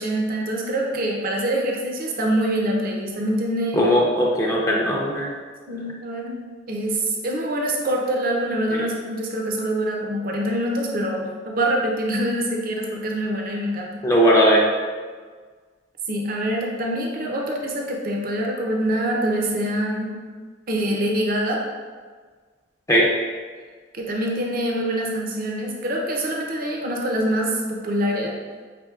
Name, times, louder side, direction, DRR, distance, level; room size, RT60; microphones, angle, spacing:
voice 1, 0.0-3.9 5.7-6.4 6.7-13.9 16.1-20.1 20.7-21.6 23.9-28.4, right 1 dB, 50° right, 0 dB, 0.6 m, -25 dB
voice 2, 3.7-5.3 14.0-14.6 22.9-23.1, equal, 15° left, -3 dB, 0.6 m, -18 dB
5.9 x 3.6 x 2.4 m, 1.5 s
head